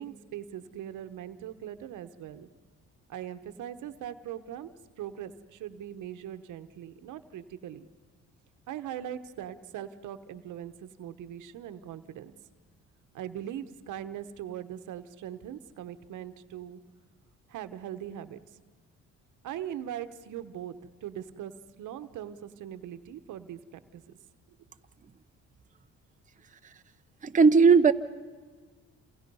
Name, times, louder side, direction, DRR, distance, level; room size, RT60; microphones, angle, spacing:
voice 1, 0.0-2.5 3.1-4.7 5.0-7.9 8.7-12.3 13.1-16.8 17.5-18.4 19.4-21.5 21.8-24.2, right 10 dB, 80° right, 11 dB, 1.0 m, -40 dB
voice 2, 27.2-27.9, right 5 dB, 25° right, 8 dB, 0.7 m, -18 dB
28.0 x 27.5 x 5.5 m, 1.4 s
cardioid pair, 90°, 30 cm